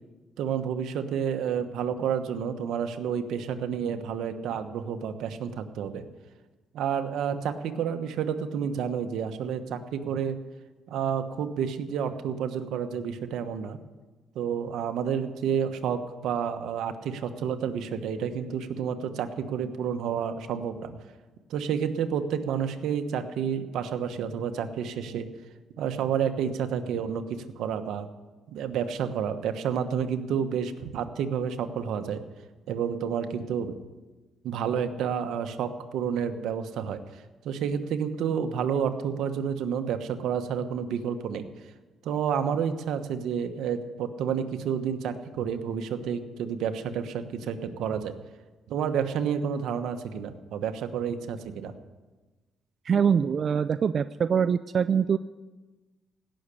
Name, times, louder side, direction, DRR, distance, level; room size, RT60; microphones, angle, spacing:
voice 1, 0.4-6.0 6.7-10.4 10.9-13.8 14.3-21.0 21.5-25.3 25.8-28.1 28.5-32.2 32.7-33.7 34.4-41.5 42.0-48.1 48.7-51.7, right 7 dB, 80° right, 7 dB, 1.1 m, -30 dB
voice 2, 52.9-55.2, right 7 dB, 50° right, 13 dB, 0.4 m, -24 dB
17.0 x 6.5 x 9.9 m, 1.2 s
cardioid pair, 90°, 0 cm